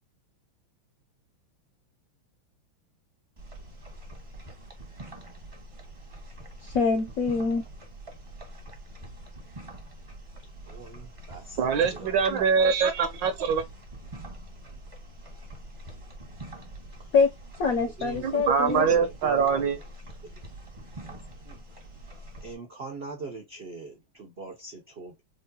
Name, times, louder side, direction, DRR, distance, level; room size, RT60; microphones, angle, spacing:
sound 1, 3.4-22.5, right 1 dB, 30° right, 0.5 m, -44 dB
voice 1, 6.6-7.6 17.1-17.3 17.6-18.9, left 5 dB, 75° left, 0.8 m, -24 dB
voice 2, 10.7-12.2 17.0-17.1 18.0-19.8 21.1-21.6 22.4-25.2, right 3 dB, 90° right, 0.5 m, -42 dB
voice 3, 11.6-13.7 18.2-19.8, right 6 dB, 75° right, 1.2 m, -23 dB
4.7 x 2.2 x 2.6 m
omnidirectional pair, 2.3 m